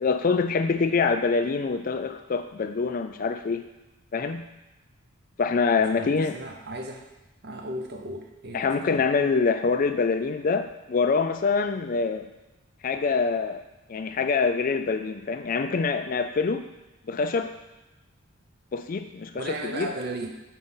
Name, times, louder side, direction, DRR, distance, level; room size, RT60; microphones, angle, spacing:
voice 1, 0.0-3.6 4.1-4.5 5.4-6.4 8.5-12.3 12.8-13.6 13.9-16.6 17.1-17.5 18.7-19.9, left 4 dB, 40° left, 8 dB, 0.3 m, -25 dB
voice 2, 5.8-7.0 7.4-9.0 19.3-20.3, right 2 dB, 45° right, 3 dB, 0.7 m, -36 dB
4.5 x 3.9 x 5.5 m, 1.1 s
head